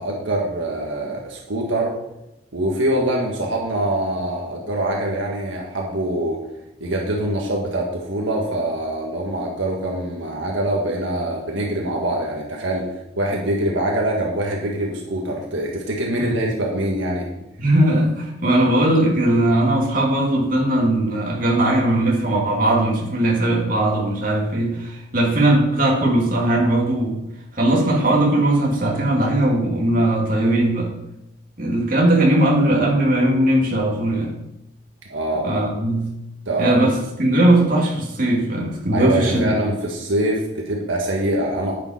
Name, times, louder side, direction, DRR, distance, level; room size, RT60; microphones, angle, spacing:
voice 1, 0.0-2.0 2.5-6.4 6.8-12.9 13.2-17.3 35.1-35.6 36.5-36.9 38.9-41.7, right 1 dB, 75° right, -1 dB, 1.7 m, -24 dB
voice 2, 17.6-27.2 27.5-30.9 31.6-34.4 35.4-36.1 36.6-39.5, right 1 dB, 45° right, -2 dB, 2.5 m, -19 dB
10.0 x 9.1 x 4.5 m, 0.86 s
head